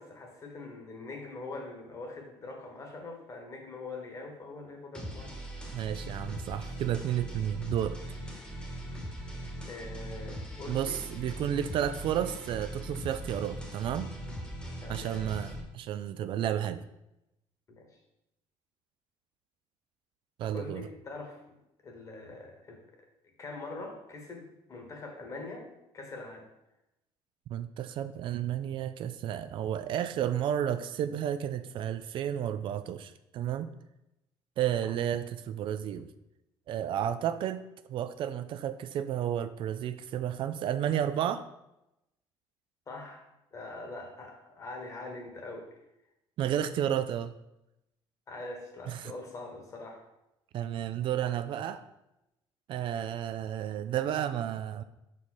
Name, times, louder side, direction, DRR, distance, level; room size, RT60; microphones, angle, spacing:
voice 1, 0.0-5.3 9.7-11.0 14.8-15.3 17.7-18.0 20.5-21.6 21.8-22.8 23.4-25.7 25.9-26.5 42.9-45.8 48.3-50.0, left 3 dB, 30° left, 2 dB, 1.3 m, -43 dB
sound 1, 4.9-15.6, right 1 dB, 10° left, 1.2 m, -40 dB
voice 2, 5.7-8.0 10.7-14.1 14.9-16.8 20.4-20.9 27.5-33.7 34.6-36.1 36.7-37.6 37.9-41.4 46.4-47.3 48.9-49.1 50.5-51.8 52.7-54.8, right 10 dB, 55° right, 11 dB, 0.3 m, -32 dB
5.3 x 4.8 x 4.3 m, 0.89 s
cardioid pair, 130°, 10 cm